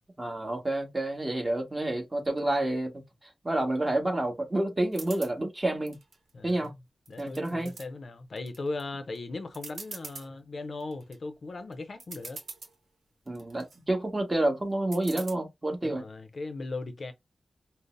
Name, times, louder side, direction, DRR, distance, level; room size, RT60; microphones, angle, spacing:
voice 1, 0.2-3.0 3.4-6.0 6.4-6.7 7.2-7.7 13.3-16.0, right 1 dB, 25° right, 1.5 m, -29 dB
sound 1, 4.9-5.3 5.9-6.7 7.1-7.9 8.4-8.8 9.2-9.3 9.5-10.3 10.8-11.2 11.7-11.8 12.0-12.7 13.3-13.8 14.9-15.3, right 4 dB, 85° right, 0.8 m, -43 dB
voice 2, 6.3-6.7 7.1-12.4 15.8-17.1, left 3 dB, 60° left, 0.5 m, -38 dB
5.2 x 2.1 x 2.5 m
wide cardioid pair, 95°, 0 cm